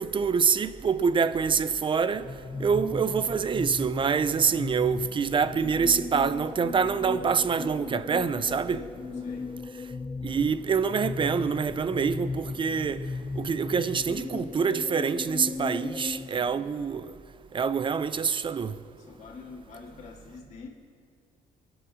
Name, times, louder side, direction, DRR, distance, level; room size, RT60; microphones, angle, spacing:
voice 1, 0.0-2.3 2.6-8.8 10.2-13.0 13.4-17.1 17.5-18.7, right 6 dB, 30° right, 0.6 m, -26 dB
sound 1, 2.1-16.3, left 4 dB, 15° left, 0.4 m, -37 dB
voice 2, 2.5-2.9 8.5-9.6 16.3-16.7 19.0-20.7, left 4 dB, 40° left, 2.4 m, -47 dB
23.0 x 8.1 x 6.3 m
cardioid pair, 110°, 17 cm